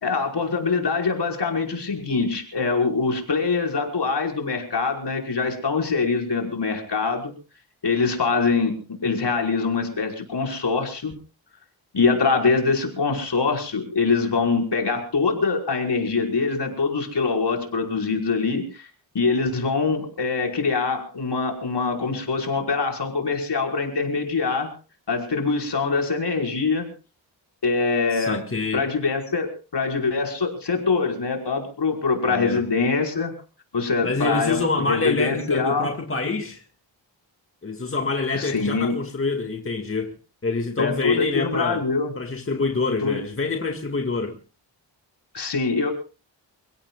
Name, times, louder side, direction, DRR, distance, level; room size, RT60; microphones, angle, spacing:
voice 1, 0.0-7.3 7.8-8.8 9.0-11.2 11.9-18.9 19.1-24.7 25.1-26.9 27.6-28.4 28.7-33.3 33.7-35.9 38.3-39.0 40.8-42.1 43.0-43.2 45.3-45.9, left 4 dB, 60° left, 5.5 m, -24 dB
voice 2, 28.1-28.8 32.2-32.6 34.0-36.6 37.6-40.1 40.4-41.8 42.2-44.4, left 3 dB, 30° left, 2.1 m, -26 dB
29.5 x 16.5 x 2.4 m
wide cardioid pair, 100°, 46 cm